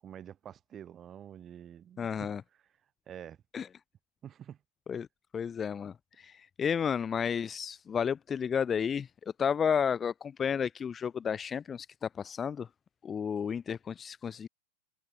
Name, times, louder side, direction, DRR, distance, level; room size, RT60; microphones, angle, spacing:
voice 1, 0.0-2.3 3.1-3.4 4.2-4.6, right 9 dB, 25° right, 7.4 m, -47 dB
voice 2, 2.0-2.4 3.5-3.7 4.9-5.1 5.3-9.1 9.4-12.7 13.0-14.5, left 7 dB, 20° left, 0.7 m, -32 dB
figure-of-eight pair, 90°, 0 cm